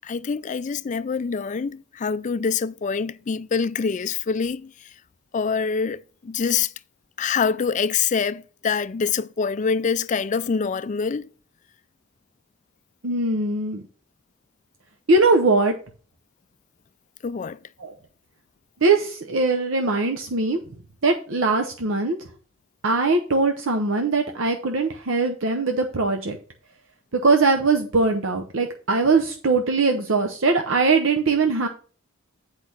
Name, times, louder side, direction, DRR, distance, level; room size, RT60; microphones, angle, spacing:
voice 1, 0.0-4.9 5.3-6.7 7.2-11.3 17.2-17.6, left 5 dB, 35° left, 0.4 m, -25 dB
voice 2, 13.0-13.8 15.1-15.7 17.8-17.9 18.8-20.6 21.0-22.2 22.8-26.4 27.1-31.7, right 3 dB, 65° right, 0.8 m, -21 dB
8.4 x 4.8 x 5.7 m
head